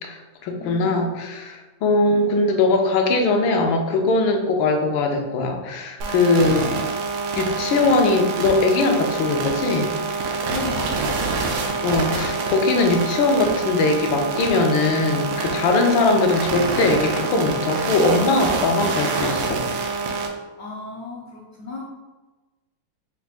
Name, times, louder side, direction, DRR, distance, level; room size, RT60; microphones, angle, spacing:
voice 1, 0.0-6.7 7.4-9.9 11.8-19.7, left 3 dB, 85° left, 3 dB, 1.4 m, -20 dB
voice 2, 0.6-1.1 10.5-11.5 20.6-21.8, left 3 dB, 65° left, -3 dB, 0.8 m, -35 dB
sound 1, 6.0-20.3, right 4 dB, 80° right, 1.4 m, -26 dB
5.0 x 3.4 x 2.4 m, 1.2 s
omnidirectional pair, 2.1 m